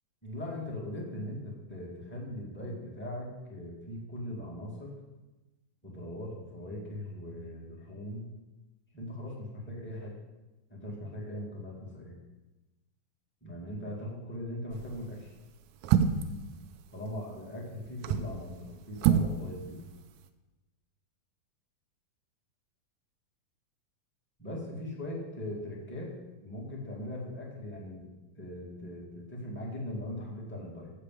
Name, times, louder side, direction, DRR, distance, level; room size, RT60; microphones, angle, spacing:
voice 1, 0.2-4.9 5.8-8.2 8.9-10.2 10.7-12.2 13.4-15.3 16.9-19.8 24.4-26.1 26.4-28.1 28.4-30.9, left 1 dB, 5° left, -4 dB, 1.0 m, -40 dB
sound 1, 14.7-15.0 15.8-16.4 17.9-18.4 19.0-19.4 19.6-19.7, right 9 dB, 90° right, 1.6 m, -25 dB
8.2 x 6.7 x 7.6 m, 1.1 s
omnidirectional pair, 4.1 m